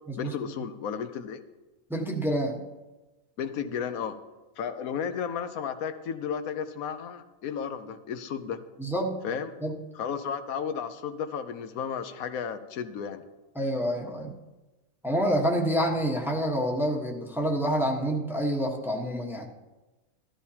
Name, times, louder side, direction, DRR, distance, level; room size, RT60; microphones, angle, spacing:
voice 1, 0.2-1.4 3.4-4.2 4.6-8.6 9.2-9.5 9.9-13.2, left 7 dB, 90° left, 9 dB, 1.2 m, -33 dB
voice 2, 1.9-2.6 8.8-9.2 9.6-9.8 13.5-14.3 15.0-19.5, equal, ahead, 0 dB, 1.1 m, -27 dB
13.5 x 13.0 x 2.8 m, 1.1 s
omnidirectional pair, 1.4 m